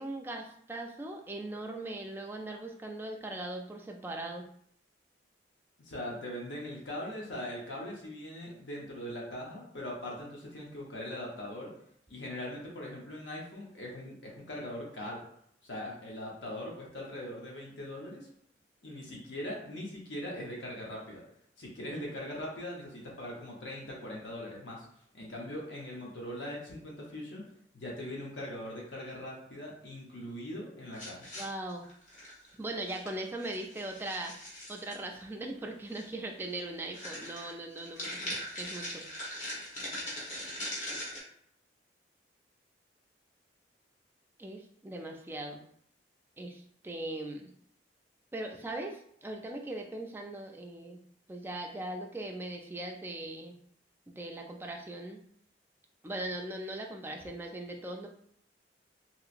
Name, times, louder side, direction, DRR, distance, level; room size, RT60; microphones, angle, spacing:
voice 1, 0.0-4.4 31.4-31.9 32.6-34.3 34.7-39.0 44.4-45.6 46.4-47.5 48.3-51.0 51.3-53.5 54.1-55.2 56.0-58.1, right 1 dB, 10° right, 1 dB, 0.3 m, -39 dB
voice 2, 5.8-11.8 12.1-15.2 15.6-18.3 18.8-21.2 21.6-24.9 25.1-27.4 27.7-31.3, left 1 dB, 85° left, -2 dB, 0.8 m, -41 dB
sound 1, 30.9-32.5 32.9-33.1 33.4-35.0 35.9-36.1 36.4-36.6 36.9-41.2, left 1 dB, 40° left, 1.1 m, -40 dB
3.0 x 2.8 x 2.5 m, 0.66 s
head